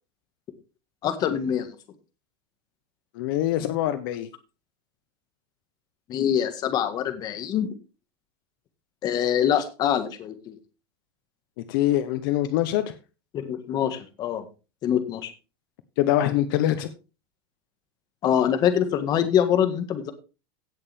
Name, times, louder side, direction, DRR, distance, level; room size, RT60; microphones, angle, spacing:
voice 1, 1.0-1.7 6.1-7.7 9.0-10.5 13.3-14.4 14.8-15.3 18.2-20.1, left 9 dB, 30° left, 8 dB, 1.7 m, -24 dB
voice 2, 3.1-4.3 11.7-12.9 16.0-16.9, left 13 dB, 65° left, 11 dB, 1.1 m, -24 dB
16.5 x 6.8 x 3.5 m, 0.31 s
supercardioid pair, 160°, 13 cm